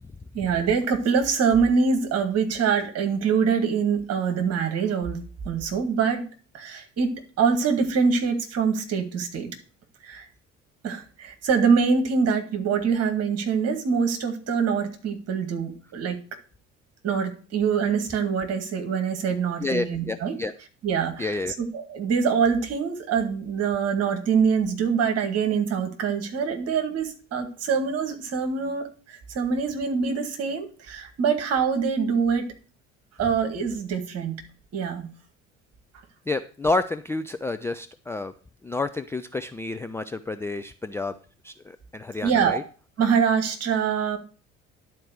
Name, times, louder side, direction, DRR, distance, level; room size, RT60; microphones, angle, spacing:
voice 1, 0.3-5.2 5.4-6.2 6.5-9.5 10.0-10.3 10.8-16.2 17.0-20.4 20.8-32.5 33.2-34.4 34.7-35.1 42.2-42.6 43.0-44.2, right 6 dB, 45° right, 6 dB, 2.1 m, -24 dB
voice 2, 19.6-20.5 21.2-21.6 36.3-38.3 38.6-41.1 41.4-42.6, left 3 dB, 5° left, 8 dB, 0.4 m, -29 dB
10.5 x 4.5 x 6.4 m, 0.39 s
figure-of-eight pair, 55°, 36 cm